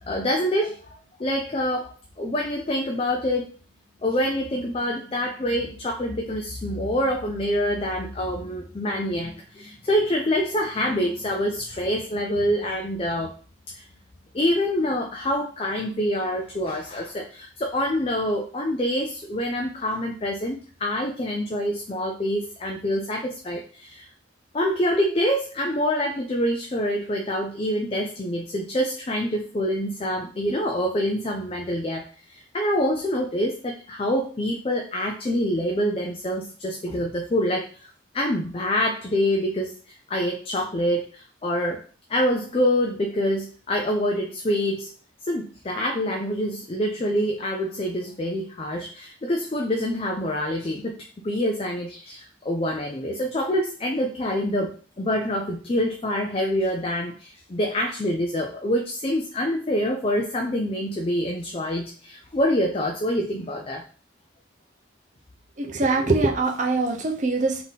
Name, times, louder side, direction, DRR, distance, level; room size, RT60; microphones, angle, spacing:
voice 1, 0.0-3.5 4.0-13.3 13.7-13.8 14.3-24.1 24.5-41.8 42.1-44.9 45.3-51.0 51.2-63.9, equal, 30° left, 2 dB, 0.4 m, -26 dB
voice 2, 65.6-67.6, right 3 dB, 40° right, 3 dB, 0.6 m, -23 dB
3.6 x 2.8 x 3.9 m, 0.40 s
head